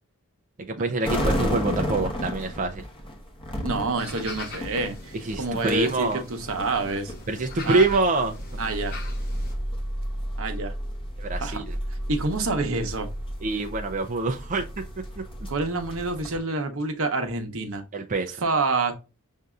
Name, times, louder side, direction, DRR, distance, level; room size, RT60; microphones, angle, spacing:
voice 1, 0.6-2.8 5.2-6.2 7.3-8.4 11.2-11.7 13.4-14.7 15.2-15.3 17.9-18.4, right 3 dB, 35° right, 0.5 m, -25 dB
sound 1, 1.0-16.4, equal, 25° left, 1.0 m, -33 dB
voice 2, 3.6-7.1 7.6-7.8 8.6-8.9 10.4-10.7 11.4-11.6 12.1-13.1 15.5-17.8 18.4-18.9, right 3 dB, 65° right, 0.9 m, -27 dB
sound 2, 4.0-9.5, left 3 dB, 45° left, 1.3 m, -42 dB
6.4 x 2.7 x 2.3 m
head